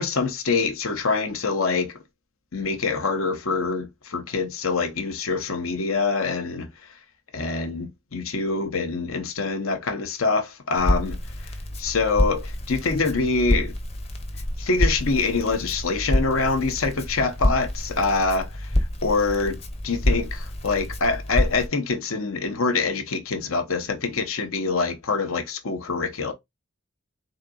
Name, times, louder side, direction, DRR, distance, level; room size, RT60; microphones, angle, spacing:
voice 1, 0.0-1.9 2.5-6.7 7.3-11.2 11.4-13.7 14.6-18.7 19.0-19.6 19.8-26.3, left 4 dB, 80° left, 0.9 m, -25 dB
Crackle, 10.8-21.7, left 1 dB, 30° left, 0.8 m, -27 dB
4.0 x 3.9 x 2.3 m
head